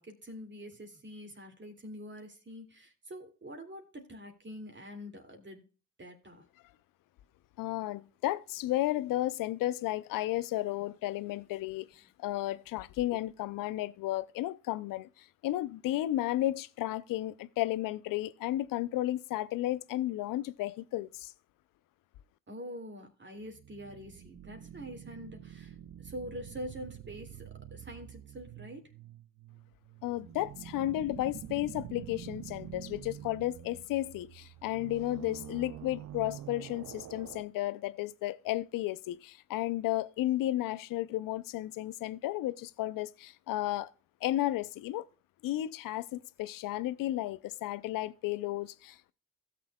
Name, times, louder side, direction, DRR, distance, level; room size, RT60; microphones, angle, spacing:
voice 1, 0.0-5.7 6.0-6.4 22.5-29.0, equal, 35° right, 2.4 m, -45 dB
voice 2, 7.6-21.3 30.0-43.9 44.2-45.0 45.4-49.1, left 15 dB, 70° left, 0.6 m, -33 dB
sound 1, 23.4-37.4, right 11 dB, 55° right, 0.6 m, -47 dB
16.0 x 6.8 x 2.3 m
hypercardioid pair, 45°, 34 cm